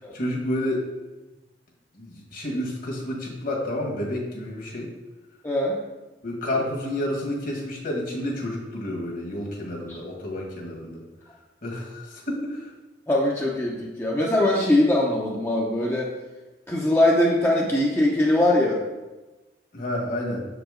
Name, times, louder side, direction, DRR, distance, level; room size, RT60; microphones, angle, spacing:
voice 1, 0.1-0.8 2.0-4.9 6.2-11.0 11.6-12.7 19.7-20.4, left 1 dB, 55° left, -1 dB, 1.6 m, -30 dB
voice 2, 5.4-5.8 13.1-16.1 16.7-18.8, left 1 dB, 15° left, -3 dB, 0.6 m, -21 dB
6.7 x 5.0 x 3.7 m, 1.1 s
head